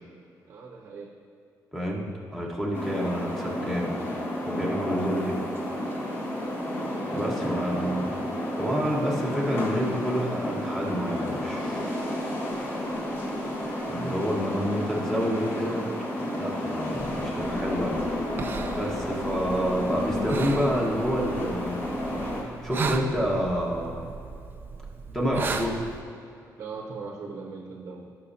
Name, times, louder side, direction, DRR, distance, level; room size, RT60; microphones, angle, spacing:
voice 1, 0.5-1.1 7.0-7.6 13.9-14.6 26.6-28.1, right 4 dB, 45° right, 0 dB, 0.9 m, -40 dB
voice 2, 1.7-4.0 4.4-5.4 7.1-8.1 8.6-11.9 13.9-15.8 16.4-18.0 18.7-21.8 22.6-24.1 25.1-25.8, equal, 5° left, -3 dB, 1.4 m, -28 dB
sound 1, 2.7-22.4, left 1 dB, 35° left, 1.6 m, -31 dB
sound 2, 17.0-26.0, right 4 dB, 30° right, 0.5 m, -36 dB
17.5 x 6.2 x 2.8 m, 2.5 s
cardioid pair, 170°, 7 cm